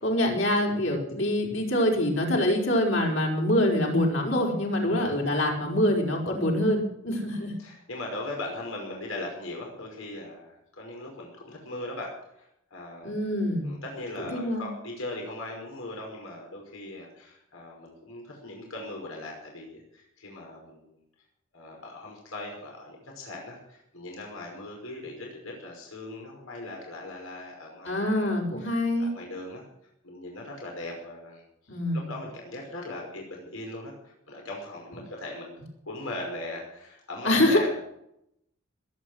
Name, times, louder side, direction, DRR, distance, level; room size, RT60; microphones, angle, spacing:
voice 1, 0.0-7.5 13.0-13.8 14.2-14.7 27.8-29.1 31.7-32.1 37.2-37.7, left 1 dB, 60° left, 0 dB, 4.9 m, -25 dB
voice 2, 4.7-5.2 7.3-13.2 13.6-21.0 21.5-28.3 28.6-29.6 30.0-31.4 31.7-35.6 35.9-37.7, left 2 dB, 85° left, 0 dB, 5.4 m, -39 dB
21.0 x 9.4 x 6.4 m, 0.78 s
head